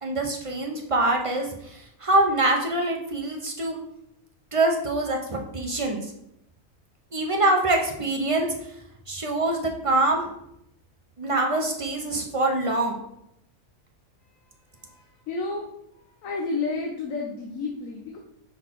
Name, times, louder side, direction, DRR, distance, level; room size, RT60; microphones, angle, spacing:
voice 1, 0.0-3.8 4.5-6.1 7.1-8.5 9.1-10.3 11.2-13.0, right 2 dB, 45° right, 1 dB, 0.4 m, -24 dB
voice 2, 14.3-15.7 16.2-18.2, left 3 dB, 65° left, 1 dB, 1.1 m, -32 dB
5.7 x 4.0 x 4.5 m, 0.77 s
omnidirectional pair, 1.6 m